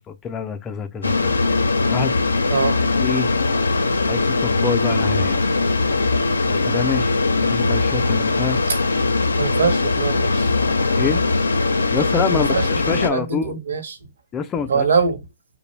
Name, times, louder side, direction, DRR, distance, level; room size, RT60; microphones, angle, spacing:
voice 1, 0.0-1.3 1.9-2.2 3.0-3.3 4.1-5.4 6.5-7.1 7.4-8.6 11.0-11.2 11.9-13.5 14.3-14.9, left 6 dB, 15° left, 0.3 m, -26 dB
sound 1, 1.0-13.1, left 3 dB, 90° left, 0.4 m, -20 dB
voice 2, 9.4-10.5 12.3-12.7 13.0-14.0 14.7-15.2, right 5 dB, 65° right, 0.7 m, -22 dB
2.4 x 2.0 x 3.0 m
hypercardioid pair, 140°, 0 cm